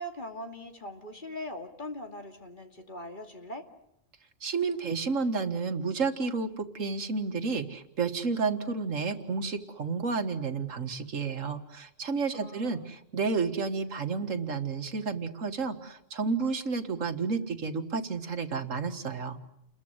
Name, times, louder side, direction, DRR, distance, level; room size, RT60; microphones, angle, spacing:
voice 1, 0.0-3.7 12.3-13.0, left 1 dB, 40° left, 4 dB, 2.6 m, -41 dB
voice 2, 4.4-19.4, right 4 dB, 85° right, 8 dB, 2.1 m, -31 dB
29.5 x 22.0 x 8.0 m, 0.80 s
omnidirectional pair, 1.3 m